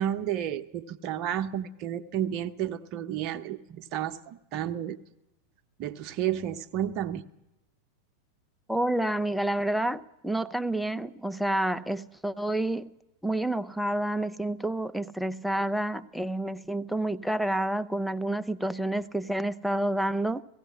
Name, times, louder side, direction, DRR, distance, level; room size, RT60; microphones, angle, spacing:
voice 1, 0.0-5.0 5.8-7.2, right 10 dB, 40° right, 1.0 m, -31 dB
voice 2, 8.7-12.9 13.2-20.4, right 1 dB, ahead, 0.7 m, -29 dB
16.5 x 16.5 x 9.7 m
figure-of-eight pair, 90°, 0 cm